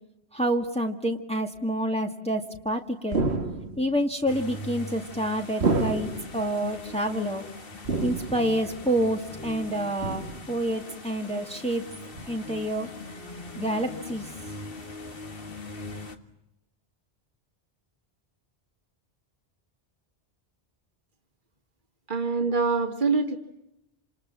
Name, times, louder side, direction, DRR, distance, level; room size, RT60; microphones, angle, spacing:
voice 1, 0.3-3.2 3.8-7.4 8.0-10.2 10.5-11.8 12.3-12.9 13.6-14.3, right 1 dB, 5° left, 2 dB, 1.9 m, -28 dB
sound 1, 3.1-3.9 5.6-6.4 7.8-8.6 10.0-10.6 12.2-12.3, right 3 dB, 80° right, 2.2 m, -28 dB
sound 2, 4.3-16.2, left 2 dB, 60° left, 2.1 m, -41 dB
voice 2, 22.1-23.4, right 4 dB, 50° right, 5 dB, 2.4 m, -24 dB
28.5 x 27.5 x 7.5 m, 0.86 s
omnidirectional pair, 1.1 m